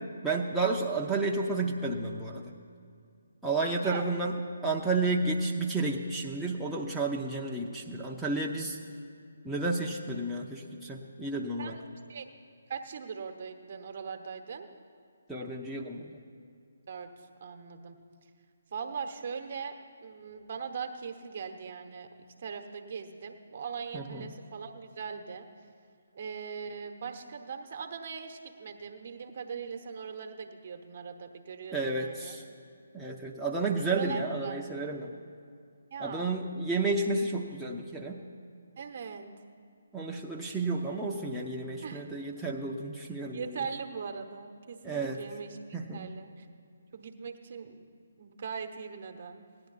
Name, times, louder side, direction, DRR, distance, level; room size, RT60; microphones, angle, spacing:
voice 1, 0.0-2.5 3.4-8.8 9.4-11.8 15.3-16.2 23.9-24.3 31.7-32.4 32.9-35.1 36.0-38.2 39.9-43.6 44.8-45.2 45.7-46.1, right 3 dB, 5° right, -5 dB, 0.7 m, -31 dB
voice 2, 3.8-4.1 11.6-11.8 12.1-12.2 12.7-14.7 16.9-18.0 18.7-19.8 20.0-25.5 26.1-32.4 33.9-34.6 35.9-36.4 38.8-39.3 41.8-42.1 43.3-46.5 46.9-47.9 48.2-49.5, right 6 dB, 45° right, 6 dB, 1.0 m, -40 dB
17.0 x 10.5 x 4.0 m, 2.4 s
figure-of-eight pair, 140°, 0 cm